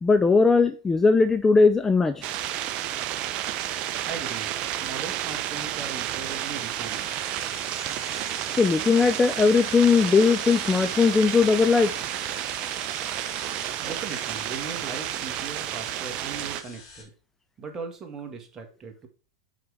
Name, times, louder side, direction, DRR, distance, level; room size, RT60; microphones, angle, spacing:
voice 1, 0.0-2.2 8.6-12.0, left 4 dB, 15° left, 0.4 m, -19 dB
sound 1, 2.2-16.6, right 12 dB, 45° right, 0.6 m, -31 dB
voice 2, 4.1-7.1 13.8-17.1 17.6-19.1, right 5 dB, 25° right, 1.8 m, -38 dB
sound 2, 5.4-17.0, left 4 dB, 60° left, 3.3 m, -45 dB
5.9 x 5.0 x 4.9 m
hypercardioid pair, 100°, 3 cm